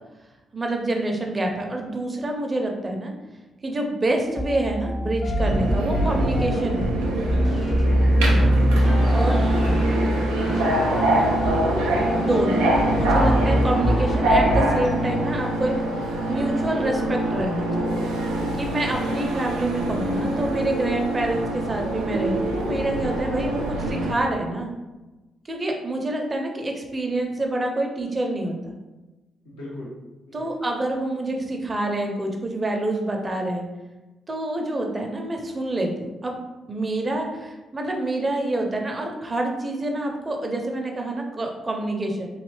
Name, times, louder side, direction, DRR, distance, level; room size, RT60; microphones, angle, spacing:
voice 1, 0.5-3.1 3.6-6.8 9.1-9.4 12.1-15.7 16.0-17.9 18.6-24.7 25.5-28.7 30.3-33.6 34.3-36.4 36.7-42.3, right 1 dB, 35° right, 2 dB, 0.7 m, -27 dB
sound 1, 4.3-14.7, equal, 55° left, 1.1 m, -23 dB
Subway metro underground, 5.4-24.1, right 1 dB, 85° right, 0.5 m, -25 dB
Piano, 7.5-14.5, left 1 dB, 35° left, 0.6 m, -34 dB
voice 2, 9.1-12.4 29.4-29.9 30.3-30.5, equal, 90° left, -8 dB, 1.1 m, -36 dB
3.2 x 2.7 x 3.1 m, 1.1 s
hypercardioid pair, 40°, 0 cm